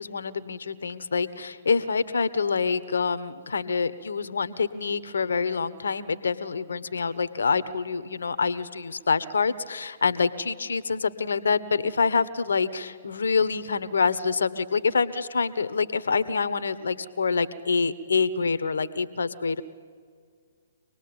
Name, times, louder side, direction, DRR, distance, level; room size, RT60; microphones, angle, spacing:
voice 1, 0.0-19.6, left 5 dB, 70° left, 15 dB, 1.2 m, -26 dB
25.5 x 19.5 x 8.8 m, 2.1 s
figure-of-eight pair, 125°, 0 cm